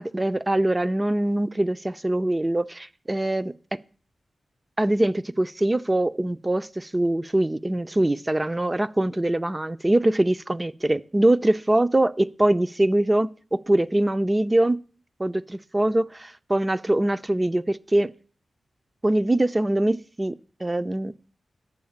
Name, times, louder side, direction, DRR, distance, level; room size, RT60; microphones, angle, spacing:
voice 1, 0.0-3.8 4.8-14.8 15.2-18.1 19.0-20.4 20.6-21.1, right 1 dB, 25° right, 0.6 m, -23 dB
10.5 x 7.2 x 7.2 m
cardioid pair, 45°, 0 cm